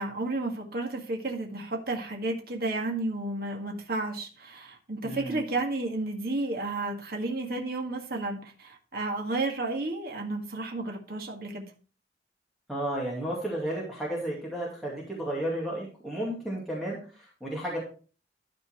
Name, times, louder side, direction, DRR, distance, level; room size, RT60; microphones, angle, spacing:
voice 1, 0.0-11.7, right 2 dB, 55° right, 1.9 m, -32 dB
voice 2, 5.0-5.4 12.7-17.8, right 1 dB, ahead, 2.4 m, -33 dB
12.5 x 4.5 x 4.6 m
head